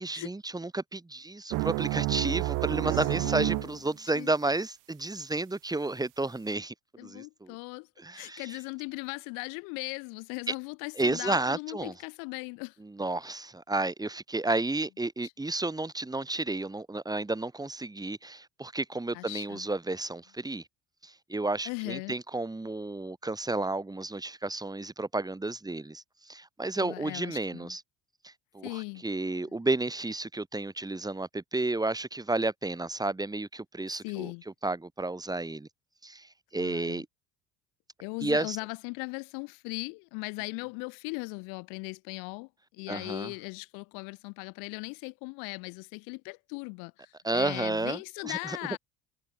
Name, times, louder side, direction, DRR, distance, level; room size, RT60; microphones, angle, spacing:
voice 1, 0.0-6.7 7.0-7.6 8.0-8.6 10.5-10.6 11.0-11.9 12.8-20.6 21.0-27.8 28.2-34.3 34.6-35.7 36.0-37.1 38.2-38.6 42.9-43.3 47.2-48.6, right 2 dB, 10° right, 6.9 m, -32 dB
sound 1, 1.5-3.8, right 23 dB, 75° right, 2.9 m, -29 dB
voice 2, 3.2-3.7 4.1-4.3 7.0-7.9 8.1-12.7 19.1-19.6 21.7-22.1 26.8-27.7 28.6-29.0 34.0-34.4 36.6-37.0 38.0-42.5 42.8-48.8, left 34 dB, 80° left, 6.1 m, -38 dB
supercardioid pair, 100°, 32 cm